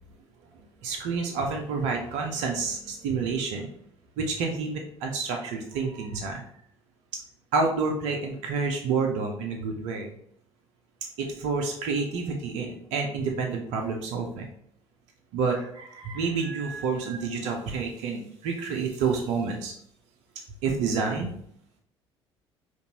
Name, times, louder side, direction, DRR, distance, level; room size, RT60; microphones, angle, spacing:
voice 1, 0.8-3.7 4.2-6.5 7.5-10.1 11.2-14.5 15.3-19.7 20.6-21.3, right 4 dB, 55° right, 2 dB, 0.6 m, -29 dB
5.2 x 2.6 x 2.8 m, 0.67 s
figure-of-eight pair, 55°, 14 cm